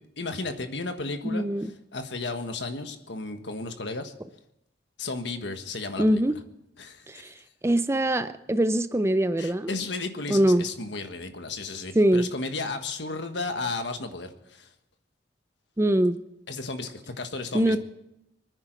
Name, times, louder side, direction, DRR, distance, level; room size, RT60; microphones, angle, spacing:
voice 1, 0.2-4.1 5.0-6.4 6.8-7.3 9.4-14.7 16.5-17.8, left 3 dB, 70° left, 7 dB, 1.5 m, -34 dB
voice 2, 1.2-1.7 6.0-6.4 7.1-7.3 7.6-9.7 10.3-10.7 12.0-12.3 15.8-16.2 17.5-17.8, right 1 dB, 15° right, 12 dB, 0.5 m, -23 dB
26.0 x 9.8 x 4.6 m, 0.86 s
head